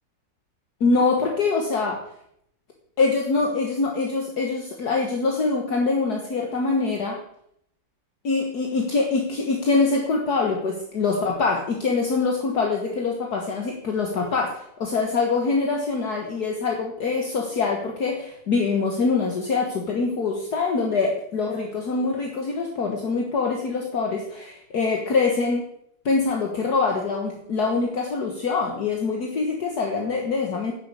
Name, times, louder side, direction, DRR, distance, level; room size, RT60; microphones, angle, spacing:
voice 1, 0.8-2.0 3.0-7.2 8.2-25.7 26.1-30.7, left 4 dB, 60° left, 1 dB, 1.9 m, -24 dB
10.5 x 7.3 x 8.3 m, 0.73 s
omnidirectional pair, 2.0 m